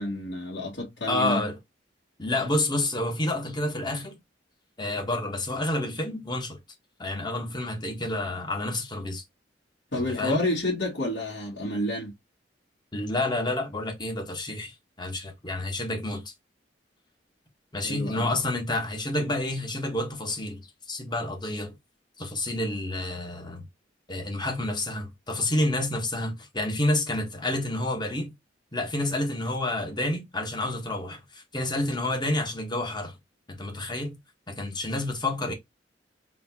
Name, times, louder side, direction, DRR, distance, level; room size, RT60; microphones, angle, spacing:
voice 1, 0.0-1.4 9.9-12.1 17.8-18.3, left 1 dB, 70° left, 2.2 m, -29 dB
voice 2, 1.1-1.6 2.2-4.2 4.8-6.6 7.0-9.2 10.2-10.4 12.9-16.2 17.7-20.6 20.9-21.8 22.2-23.6 24.1-28.3 28.7-33.2 33.5-34.2 34.5-35.5, left 1 dB, 25° left, 1.2 m, -29 dB
4.1 x 3.3 x 2.8 m
head